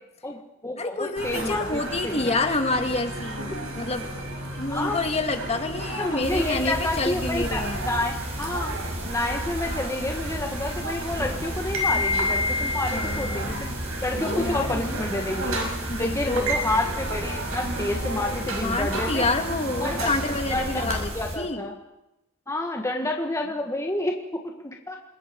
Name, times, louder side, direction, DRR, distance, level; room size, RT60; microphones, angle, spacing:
voice 1, 0.2-2.5 3.5-3.6 4.7-5.0 6.0-8.7 9.1-13.7 14.0-15.6 16.0-19.2 19.8-20.1 20.5-20.9 21.1-21.7 22.5-25.0, left 2 dB, 15° left, 2 dB, 1.7 m, -29 dB
voice 2, 0.8-4.1 4.5-7.9 12.9-13.8 14.2-15.1 15.9-16.5 18.6-21.6, left 2 dB, 30° left, 6 dB, 2.1 m, -28 dB
sound 1, 1.2-21.0, equal, 80° right, 5.9 m, -32 dB
sound 2, 6.2-21.4, equal, 30° right, 6.3 m, -34 dB
27.0 x 22.0 x 5.3 m, 0.90 s
head